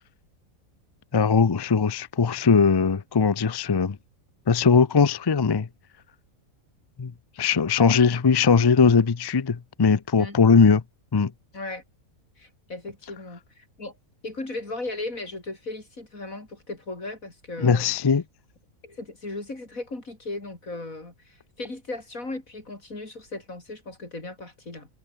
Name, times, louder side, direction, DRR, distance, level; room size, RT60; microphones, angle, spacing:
voice 1, 1.1-4.0 4.5-5.7 7.0-7.1 7.4-10.8 11.1-11.3 17.6-18.2, left 5 dB, 40° left, 0.3 m, -20 dB
voice 2, 11.5-11.8 12.4-14.0 14.2-18.0 18.8-24.9, left 2 dB, 70° left, 5.6 m, -36 dB
omnidirectional pair, 1.5 m